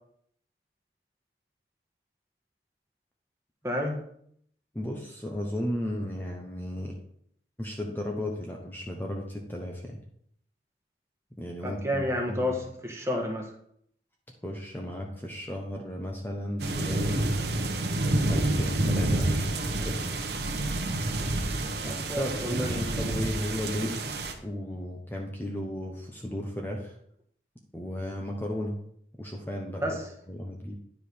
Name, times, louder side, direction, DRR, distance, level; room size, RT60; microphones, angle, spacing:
voice 1, 3.6-4.0 11.6-13.5 21.8-23.1 29.8-30.1, left 1 dB, 15° right, 1 dB, 1.3 m, -31 dB
voice 2, 4.7-7.0 7.6-10.0 11.4-12.6 14.4-17.1 18.3-19.4 19.8-20.0 21.8-24.0 24.4-26.9 27.7-28.8 29.2-30.0 30.3-30.7, left 1 dB, 10° left, 0 dB, 0.9 m, -34 dB
sound 1, 16.6-24.3, right 2 dB, 70° right, 1.1 m, -28 dB
10.0 x 4.9 x 5.1 m, 0.67 s
head